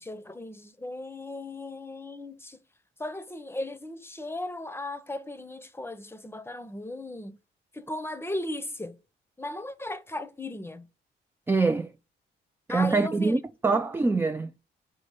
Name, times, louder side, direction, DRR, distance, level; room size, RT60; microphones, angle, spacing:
voice 1, 0.0-2.6 3.0-7.4 7.7-9.0 9.4-10.9 12.7-13.4 13.7-14.2, left 1 dB, 10° left, 0.7 m, -37 dB
voice 2, 11.5-11.9 12.7-14.5, right 3 dB, 10° right, 0.3 m, -24 dB
5.5 x 4.3 x 5.1 m
cardioid pair, 90°, 20 cm